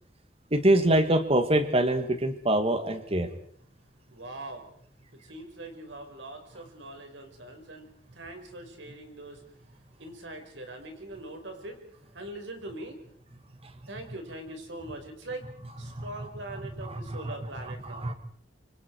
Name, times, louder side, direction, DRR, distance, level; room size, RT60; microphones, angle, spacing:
voice 1, 0.5-3.3 15.9-16.1 16.8-17.2 17.6-18.1, right 1 dB, 35° right, 8 dB, 2.1 m, -25 dB
voice 2, 4.1-4.7 5.2-9.4 10.0-11.8 12.1-13.0 13.9-15.5 15.8-18.2, right 1 dB, 90° right, 4 dB, 5.1 m, -42 dB
26.5 x 25.0 x 4.8 m, 0.63 s
head